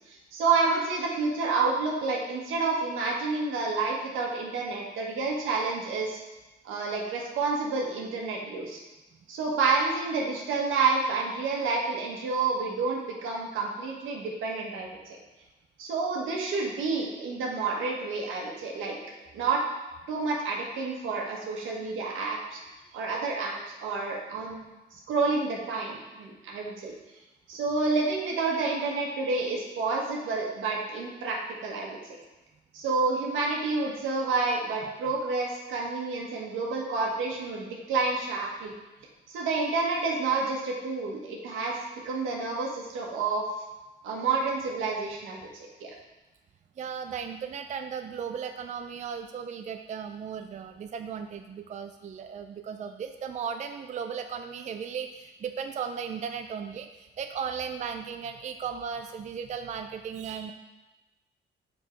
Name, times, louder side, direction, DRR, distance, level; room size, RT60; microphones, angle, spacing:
voice 1, 0.1-6.2 6.6-8.8 9.3-15.2 15.8-19.0 19.3-19.6 20.1-22.6 22.9-24.7 25.1-26.9 27.5-32.0 32.7-38.7 39.3-41.8 42.0-43.4 44.0-45.9, right 4 dB, 85° right, -1 dB, 1.4 m, -29 dB
voice 2, 46.8-60.5, right 7 dB, 35° right, 7 dB, 0.4 m, -36 dB
6.2 x 4.7 x 4.4 m, 1.1 s
cardioid pair, 90°, 20 cm